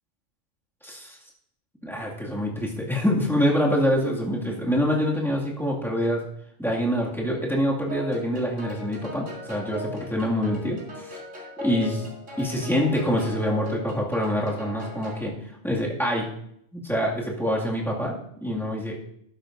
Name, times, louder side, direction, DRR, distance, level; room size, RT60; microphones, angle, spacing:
voice 1, 0.8-1.2 1.8-6.2 6.6-11.2 11.6-12.1 12.4-15.3 15.6-16.3 16.7-18.9, equal, ahead, -4 dB, 1.9 m, -25 dB
sound 1, 7.9-15.3, left 2 dB, 60° right, 3.5 m, -38 dB
12.5 x 11.0 x 2.6 m, 0.72 s
omnidirectional pair, 1.4 m